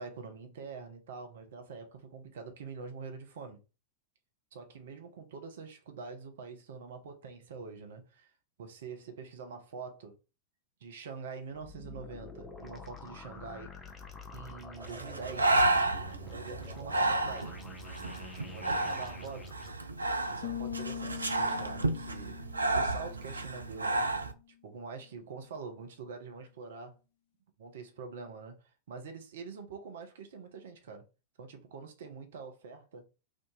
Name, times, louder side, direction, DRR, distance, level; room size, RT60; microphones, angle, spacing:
voice 1, 0.0-3.6 4.5-8.3 8.6-10.2 10.8-13.7 14.3-15.6 16.3-17.6 18.3-19.6 20.3-22.4 22.7-24.0 24.6-27.0 27.6-28.6 28.9-31.0 31.4-33.0, right 5 dB, 60° right, 0.7 m, -45 dB
sound 1, 11.5-19.7, left 3 dB, 10° left, 0.6 m, -48 dB
Breathing, 14.8-24.3, right 2 dB, 80° right, 0.4 m, -31 dB
sound 2, 20.4-24.1, left 11 dB, 55° left, 0.4 m, -43 dB
2.8 x 2.5 x 3.7 m
figure-of-eight pair, 90°, 0 cm